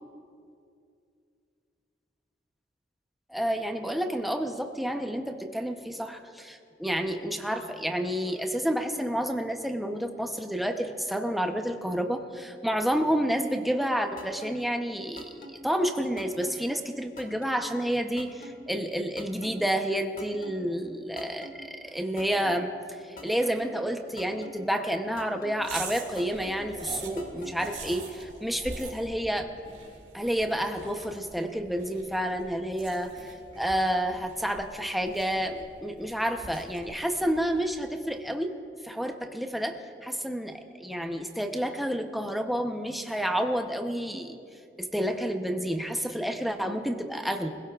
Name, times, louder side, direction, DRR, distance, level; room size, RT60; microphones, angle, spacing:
voice 1, 3.3-29.5 30.1-38.5 38.8-44.4 44.8-47.5, equal, ahead, 4 dB, 0.7 m, -30 dB
sound 1, 14.2-14.5 15.2-15.5 16.2-16.5 17.2-17.5 18.2-18.5 19.2-19.5 20.2-20.5 21.2-21.5 22.2-22.5 23.2-23.5 24.2-24.5 25.2-25.5 26.2-26.5 27.2-27.5, left 1 dB, 55° left, 1.6 m, -44 dB
sound 2, 25.6-38.1, right 3 dB, 45° right, 3.0 m, -44 dB
24.0 x 16.0 x 2.4 m, 2.5 s
head